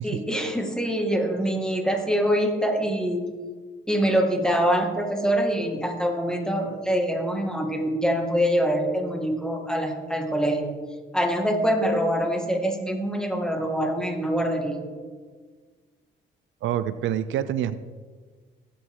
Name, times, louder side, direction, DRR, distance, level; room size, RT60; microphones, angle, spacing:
voice 1, 0.0-3.3 3.9-10.7 11.1-14.8, equal, 5° left, 2 dB, 2.2 m, -24 dB
voice 2, 16.6-17.7, right 10 dB, 75° right, 13 dB, 0.6 m, -26 dB
19.5 x 8.0 x 3.8 m, 1.5 s
cardioid pair, 90°, 20 cm